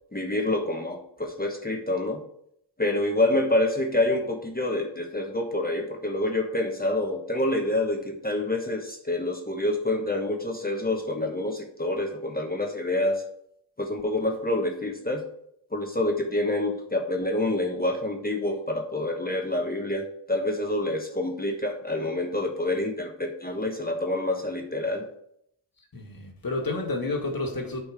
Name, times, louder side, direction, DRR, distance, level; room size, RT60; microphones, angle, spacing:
voice 1, 0.1-2.2 2.8-13.2 13.8-15.2 15.7-25.1, left 1 dB, 20° left, 2 dB, 1.2 m, -27 dB
voice 2, 25.9-27.8, left 2 dB, 45° left, 2 dB, 2.0 m, -30 dB
8.7 x 4.3 x 4.9 m, 0.71 s
cardioid pair, 70°, 47 cm